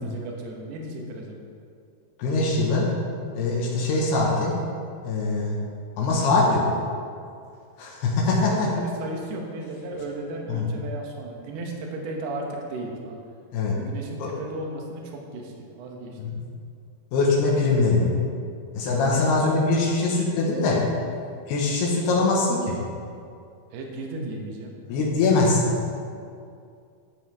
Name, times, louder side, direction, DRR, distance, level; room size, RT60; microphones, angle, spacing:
voice 1, 0.0-1.4 8.4-13.2 13.7-16.2 19.1-19.5 23.7-24.8, right 2 dB, 80° right, 0 dB, 3.1 m, -35 dB
voice 2, 2.2-2.9 3.3-4.6 5.0-5.6 6.0-6.6 7.8-8.7 10.5-10.7 13.5-13.8 14.2-14.3 16.1-16.4 17.1-18.1 18.7-20.8 21.5-22.8 24.9-25.7, left 3 dB, 85° left, -4 dB, 3.4 m, -22 dB
14.0 x 7.7 x 3.5 m, 2.4 s
omnidirectional pair, 4.6 m